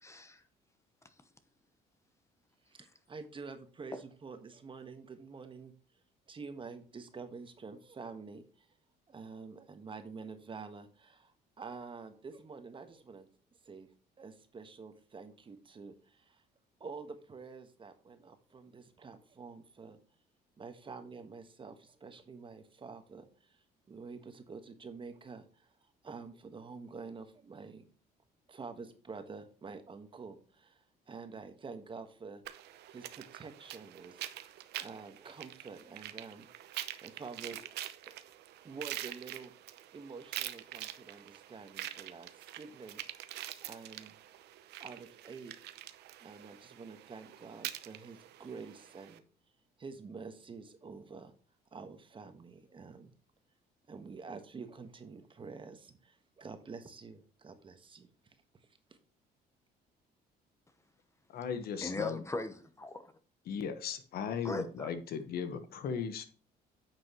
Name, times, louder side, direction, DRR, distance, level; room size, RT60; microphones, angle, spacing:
voice 1, 0.0-0.4 61.8-63.1 64.4-64.9, left 2 dB, 15° left, 0.9 m, -39 dB
voice 2, 2.7-5.7 6.3-8.7 9.1-13.3 13.6-13.9 14.2-16.4 16.8-20.0 20.6-27.9 28.5-32.4 32.9-36.5 36.7-37.8 38.6-39.5 39.9-43.0 43.6-44.2 44.8-45.5 46.2-49.2 49.8-51.3 51.7-53.1 53.9-59.0, right 4 dB, 30° right, 1.4 m, -48 dB
sound 1, 32.4-49.2, right 13 dB, 75° right, 0.8 m, -45 dB
voice 3, 61.3-62.2 63.5-66.2, left 7 dB, 65° left, 1.2 m, -37 dB
9.7 x 6.3 x 3.0 m
cardioid pair, 110°, 17 cm